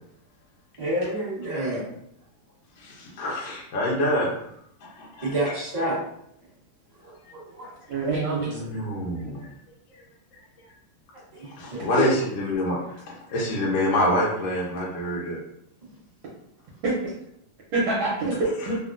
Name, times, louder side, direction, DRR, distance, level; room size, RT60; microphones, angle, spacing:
voice 1, 0.8-1.8 3.2-3.3 5.2-6.0 7.0-7.7 11.3-11.5 12.0-12.1, right 1 dB, 25° right, -9 dB, 0.9 m, -28 dB
voice 2, 2.8-4.3 4.8-5.2 8.5-9.4 11.4-12.8 13.0-15.4, left 1 dB, 70° left, -5 dB, 1.4 m, -26 dB
voice 3, 7.9-8.6 16.8-17.1 17.7-18.8, right 3 dB, 70° right, -5 dB, 1.4 m, -25 dB
3.6 x 2.2 x 2.5 m, 0.75 s
omnidirectional pair, 2.4 m